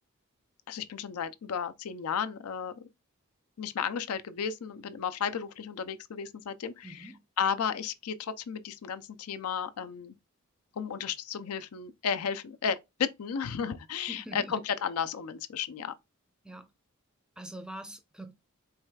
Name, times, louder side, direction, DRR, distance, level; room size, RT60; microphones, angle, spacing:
voice 1, 0.7-2.8 3.6-7.1 7.4-10.2 10.8-15.9, left 7 dB, 90° left, 0.5 m, -33 dB
voice 2, 6.8-7.2 14.1-14.6 16.4-16.7 17.4-18.3, right 1 dB, 5° right, 0.5 m, -44 dB
4.7 x 3.2 x 2.2 m
head